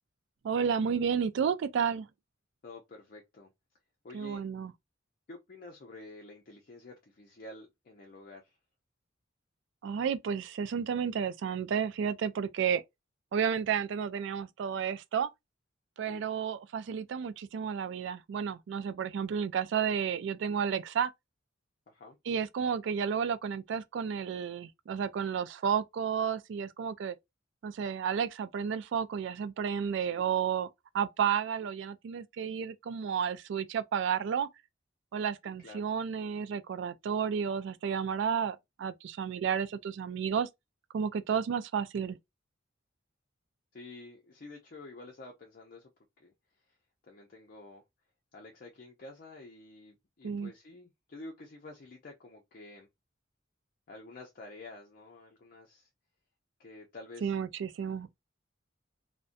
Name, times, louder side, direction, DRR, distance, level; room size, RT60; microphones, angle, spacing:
voice 1, 0.4-2.1 4.1-4.7 9.8-12.8 13.3-15.3 16.0-21.1 22.3-27.2 27.6-30.7 30.9-34.5 35.1-40.5 40.9-42.2 50.2-50.5 57.2-58.2, right 7 dB, 65° right, 0.3 m, -32 dB
voice 2, 2.6-3.5 4.0-4.4 5.3-8.6 16.1-16.3 21.9-22.2 30.0-30.3 35.6-35.8 43.7-45.9 46.2-46.3 46.7-46.8 47.0-47.8 48.3-52.9 53.9-55.9 56.6-57.4, left 2 dB, 50° left, 0.5 m, -49 dB
2.5 x 2.1 x 2.5 m
head